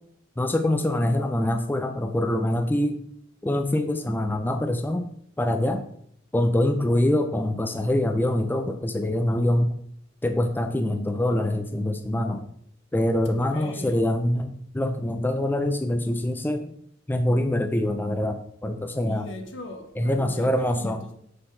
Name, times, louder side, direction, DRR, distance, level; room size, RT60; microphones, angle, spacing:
voice 1, 0.4-3.0 3.4-5.1 5.4-5.8 6.3-9.7 10.2-12.5 12.9-16.7 17.1-19.3 20.0-21.0, left 1 dB, 10° left, 0.4 m, -24 dB
voice 2, 13.4-14.0 19.1-21.1, left 2 dB, 70° left, 1.1 m, -39 dB
6.6 x 3.8 x 5.6 m
head